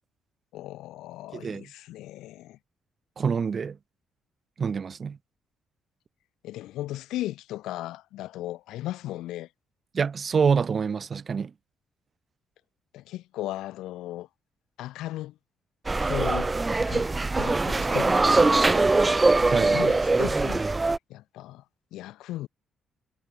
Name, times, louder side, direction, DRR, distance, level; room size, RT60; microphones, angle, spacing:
voice 1, 0.5-2.6 6.4-9.5 12.9-14.3 14.8-15.4 16.0-16.5 16.9-17.1 17.4-21.6 21.9-22.5, left 15 dB, 90° left, 2.2 m, -37 dB
voice 2, 1.3-1.6 3.2-3.8 4.6-5.2 9.9-11.5 19.5-19.8, right 6 dB, 45° right, 0.4 m, -26 dB
sound 1, 15.9-21.0, right 3 dB, 20° right, 1.4 m, -22 dB
cardioid pair, 90°, 0 cm